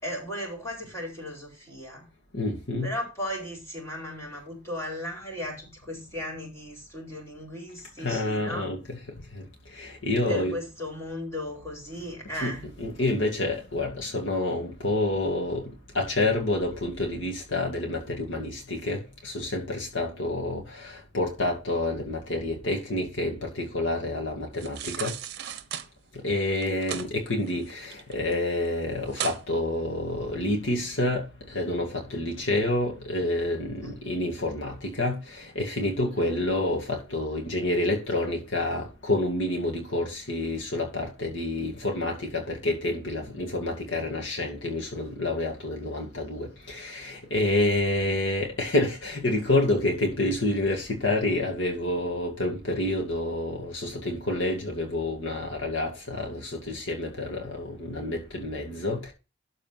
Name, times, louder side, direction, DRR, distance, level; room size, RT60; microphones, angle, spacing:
voice 1, 0.0-2.1 2.8-8.7 10.3-12.6 33.8-33.9 35.8-36.4, equal, 15° left, 4.3 m, -36 dB
voice 2, 2.3-2.9 8.0-9.0 9.3-9.4 9.8-10.6 12.3-25.1 26.2-59.1, left 2 dB, 65° left, 2.2 m, -28 dB
sound 1, 24.5-25.9 26.6-27.1 27.5-28.3 28.6-28.7 29.1-29.4 29.9-30.0, right 8 dB, 55° right, 1.0 m, -35 dB
12.5 x 4.2 x 5.9 m
head